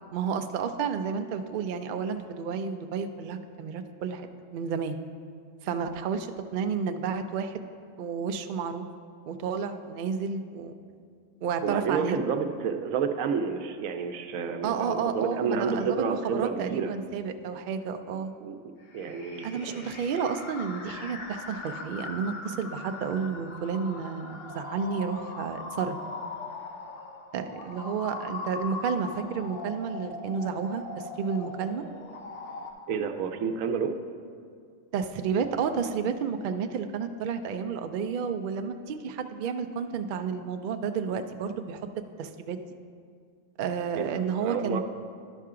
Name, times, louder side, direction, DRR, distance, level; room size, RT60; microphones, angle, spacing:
voice 1, 0.1-4.3 4.5-5.0 5.6-7.6 8.0-8.9 9.3-10.7 11.4-12.2 14.6-18.3 19.4-26.0 27.3-31.8 34.9-41.9 42.2-42.6 43.6-44.8, right 6 dB, 70° right, 8 dB, 0.4 m, -31 dB
voice 2, 11.6-16.9 18.4-18.6 18.9-19.8 32.9-33.9 43.9-44.8, right 6 dB, 90° right, 7 dB, 1.0 m, -30 dB
sound 1, 18.9-32.7, left 3 dB, 55° left, 0.8 m, -40 dB
11.0 x 5.6 x 3.7 m, 2.2 s
omnidirectional pair, 1.4 m